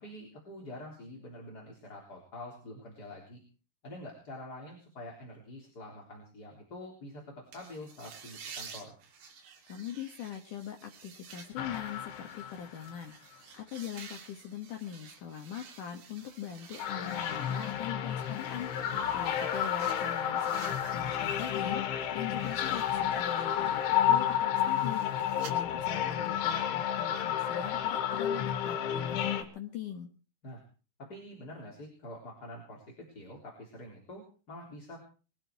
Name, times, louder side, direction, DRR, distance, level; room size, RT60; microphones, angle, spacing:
voice 1, 0.0-3.4 3.8-8.9 18.9-19.1 30.4-30.6 31.0-32.8 33.1-35.0, left 1 dB, 20° left, -1 dB, 3.5 m, -46 dB
sound 1, 7.5-21.8 22.1-25.5, right 6 dB, 65° right, 5.0 m, -52 dB
voice 2, 9.7-30.1, left 9 dB, 65° left, 5 dB, 2.1 m, -42 dB
sound 2, 11.6-13.0 16.8-29.4, left 10 dB, 85° left, 4.0 m, -31 dB
22.5 x 13.5 x 4.7 m, 0.38 s
omnidirectional pair, 5.4 m